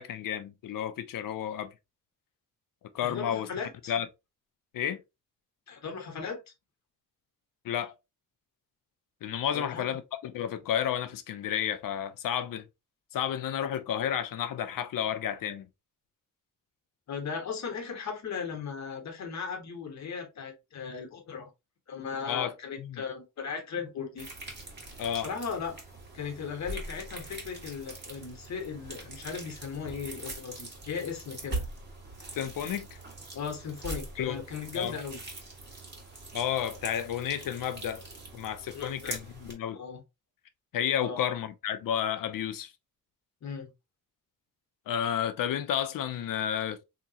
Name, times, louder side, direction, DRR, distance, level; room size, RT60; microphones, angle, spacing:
voice 1, 0.0-1.7 2.9-3.5 3.9-4.1 4.7-5.0 7.6-7.9 9.2-12.6 13.1-15.7 22.3-22.5 22.8-23.0 25.0-25.3 32.3-33.0 34.2-34.4 34.7-34.9 36.3-38.1 38.3-39.8 40.7-42.7 44.9-46.8, left 9 dB, 70° left, 0.6 m, -31 dB
voice 2, 3.0-3.9 5.7-6.5 9.5-10.0 17.1-21.5 21.9-24.3 25.2-25.8 26.1-31.6 33.3-35.2 38.7-39.2 39.7-40.0 41.0-41.2 43.4-43.7, left 6 dB, 55° left, 1.2 m, -37 dB
sound 1, 24.2-39.5, right 2 dB, 30° right, 1.4 m, -42 dB
3.7 x 2.9 x 2.7 m
wide cardioid pair, 155°, 34 cm